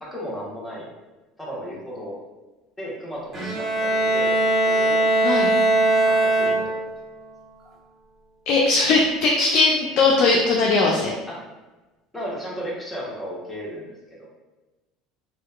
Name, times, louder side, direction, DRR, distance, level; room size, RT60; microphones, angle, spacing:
voice 1, 0.0-0.9 1.4-2.2 2.8-5.1 6.0-6.8 7.6-7.7 11.3-11.4 12.1-14.3, equal, 5° left, -6 dB, 1.0 m, -35 dB
Bowed string instrument, 3.3-7.0, right 2 dB, 30° right, 1.0 m, -20 dB
voice 2, 8.5-11.1, left 3 dB, 60° left, -2 dB, 0.4 m, -19 dB
2.7 x 2.1 x 2.3 m, 1.1 s
supercardioid pair, 90°, 0 cm